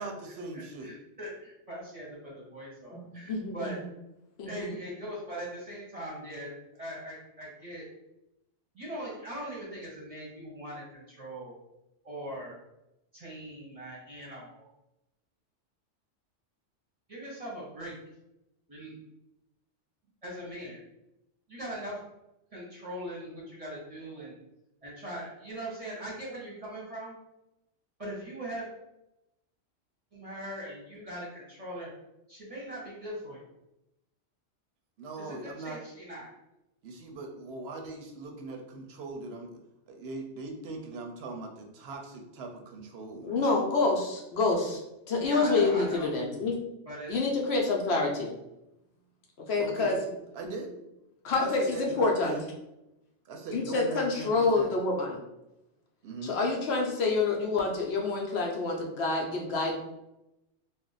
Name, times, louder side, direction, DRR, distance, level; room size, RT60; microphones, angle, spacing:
voice 1, 0.0-0.9 35.0-35.8 36.8-39.5 39.9-43.5 49.6-50.0 50.3-50.7 51.4-52.5 53.3-54.7 56.0-56.4, right 3 dB, 65° right, 3 dB, 0.8 m, -40 dB
voice 2, 0.5-2.2 2.5-3.8 4.4-7.9 8.7-11.6 12.0-12.6 13.1-14.7 17.1-17.9 18.7-19.0 20.2-20.8 21.5-22.0 22.5-24.3 24.8-27.2 28.0-28.6 30.1-31.9 32.3-33.4 35.2-36.3 45.2-46.1 46.9-47.1, right 1 dB, 35° right, -5 dB, 0.7 m, -40 dB
voice 3, 3.3-3.7 4.4-4.7 43.2-44.8 45.1-46.6 47.1-48.3 49.5-50.0 51.2-52.4 53.5-55.2 56.2-59.7, left 3 dB, 65° left, 0 dB, 0.8 m, -27 dB
2.4 x 2.1 x 3.8 m, 0.90 s
omnidirectional pair, 1.2 m